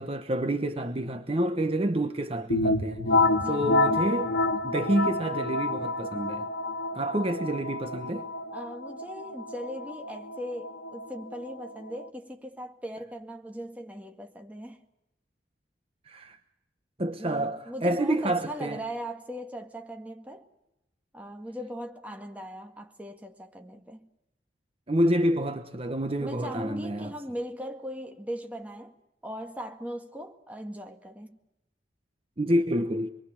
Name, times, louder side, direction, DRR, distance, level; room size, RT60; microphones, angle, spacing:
voice 1, 0.0-3.1 3.5-4.3 4.6-6.5 6.9-8.3 16.1-16.4 17.0-18.8 24.9-27.1 32.4-33.1, right 1 dB, 35° right, 1.0 m, -28 dB
sound 1, 2.5-12.1, left 2 dB, 80° left, 1.4 m, -28 dB
voice 2, 3.3-3.7 8.5-14.8 17.2-20.5 21.1-24.1 26.2-31.4, equal, 10° right, 1.8 m, -39 dB
27.0 x 22.5 x 7.2 m
head